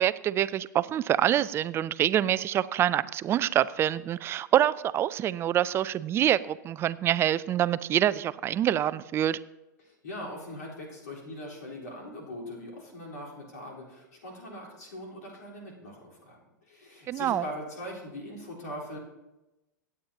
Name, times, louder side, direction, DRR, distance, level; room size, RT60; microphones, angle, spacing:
voice 1, 0.0-9.4 17.1-17.4, right 11 dB, 25° right, 17 dB, 0.4 m, -26 dB
voice 2, 9.8-16.4 16.7-19.0, left 1 dB, 65° left, -3 dB, 3.8 m, -41 dB
23.5 x 8.7 x 2.8 m, 1.0 s
figure-of-eight pair, 95°, 10 cm